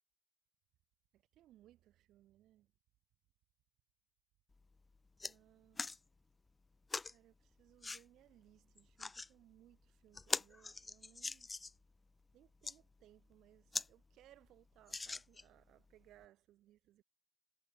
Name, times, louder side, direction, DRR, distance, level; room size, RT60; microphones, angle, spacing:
voice 1, 1.1-2.7 5.2-5.9 7.1-11.5 12.3-17.0, right 13 dB, 85° right, 6.2 m, -66 dB
sound 1, 4.5-4.6 4.9-5.3 5.8-6.0 6.9-7.1 7.8-8.0 8.8-9.3 9.7-9.8 10.1-11.8 12.4-12.8 13.3-13.4 13.7-13.9 14.2-14.3 14.9-15.6 16.2-16.3, left 3 dB, 25° left, 0.4 m, -42 dB
cardioid pair, 90°, 0 cm